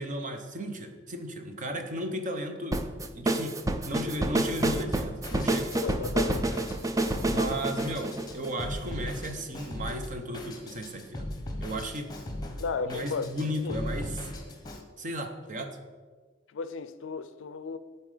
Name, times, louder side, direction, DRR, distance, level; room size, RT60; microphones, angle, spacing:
voice 1, 0.0-3.6 3.9-5.7 7.3-11.3 11.6-12.1 12.8-14.3 15.0-15.7, equal, 40° right, 0.9 m, -35 dB
sound 1, 2.7-9.0, right 2 dB, 15° right, 0.4 m, -28 dB
Drum kit, 4.6-14.8, left 1 dB, 20° left, 1.0 m, -38 dB
voice 2, 5.7-6.7 12.6-13.3 13.6-13.8 16.5-17.8, left 4 dB, 70° left, 0.4 m, -34 dB
11.0 x 4.3 x 5.0 m
head